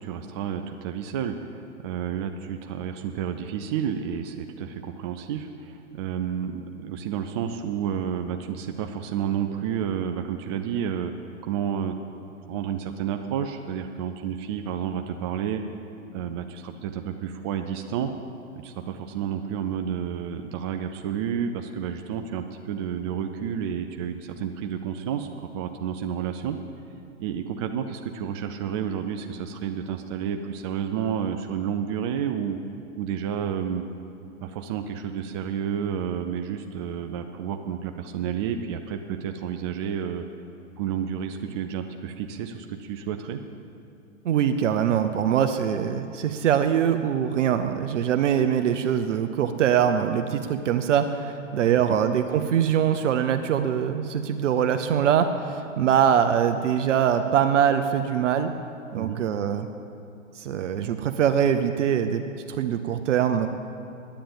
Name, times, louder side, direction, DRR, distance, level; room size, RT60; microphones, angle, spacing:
voice 1, 0.0-11.1 11.4-12.0 12.5-15.6 16.1-18.1 18.5-26.6 27.2-32.6 33.0-33.8 34.4-40.2 40.8-43.4 51.9-52.0 58.9-59.2, right 8 dB, 25° right, 5 dB, 0.3 m, -30 dB
voice 2, 44.2-58.5 58.9-59.7 60.3-62.2 62.5-63.5, right 8 dB, 65° right, 8 dB, 0.8 m, -23 dB
10.5 x 9.1 x 8.6 m, 2.7 s
hypercardioid pair, 120°, 39 cm